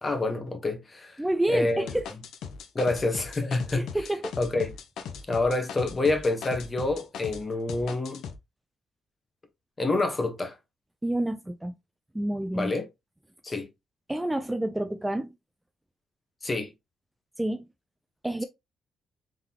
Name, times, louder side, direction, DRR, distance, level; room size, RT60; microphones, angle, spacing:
voice 1, 0.0-1.2 1.5-2.0 2.7-3.8 4.4-4.7 5.3-8.2 9.8-10.5 12.5-12.8 13.4-13.7 16.4-16.7, left 2 dB, 25° left, 1.2 m, -27 dB
voice 2, 1.2-2.1 3.7-4.3 11.0-11.8 12.1-12.7 14.1-15.3 17.4-17.6 18.2-18.4, right 1 dB, 10° right, 0.4 m, -28 dB
sound 1, 1.9-7.4 7.7-8.3, left 6 dB, 80° left, 0.7 m, -39 dB
3.7 x 3.6 x 2.9 m
cardioid pair, 90°, 0 cm